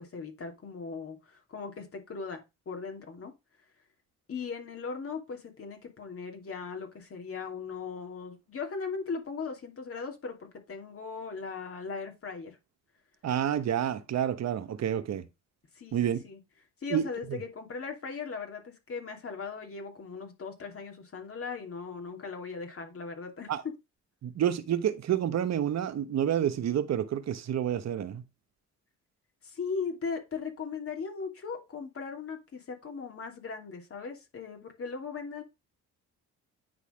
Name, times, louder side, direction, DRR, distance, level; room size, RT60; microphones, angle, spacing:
voice 1, 0.0-2.4 2.7-3.3 4.3-12.6 15.7-16.4 16.8-23.5 29.4-35.4, left 5 dB, 50° left, 2.7 m, -38 dB
voice 2, 13.2-15.2 15.9-16.2 16.9-17.0 23.5-23.6 24.2-28.2, right 10 dB, 60° right, 1.2 m, -29 dB
9.6 x 4.0 x 5.0 m
cardioid pair, 90°, 30 cm